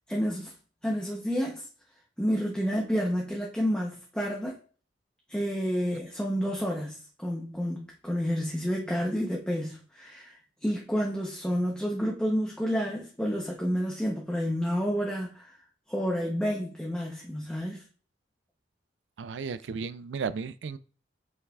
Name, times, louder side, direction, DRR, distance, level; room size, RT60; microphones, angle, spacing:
voice 1, 0.1-0.5 0.8-1.7 2.2-4.6 5.3-15.5 15.9-17.8, equal, 5° left, -2 dB, 0.8 m, -30 dB
voice 2, 19.2-20.8, right 5 dB, 75° right, 15 dB, 0.4 m, -34 dB
7.9 x 5.5 x 2.4 m, 0.41 s
head